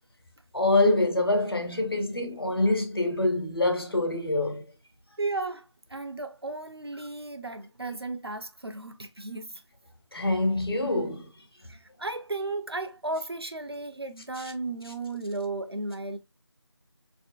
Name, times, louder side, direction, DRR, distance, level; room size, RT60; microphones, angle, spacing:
voice 1, 0.5-4.6 10.1-11.3 14.4-14.5, left 2 dB, 55° left, 0.8 m, -25 dB
voice 2, 5.2-9.6 11.6-16.2, right 2 dB, 60° right, 0.6 m, -34 dB
4.3 x 2.6 x 2.3 m
figure-of-eight pair, 180°, 15 cm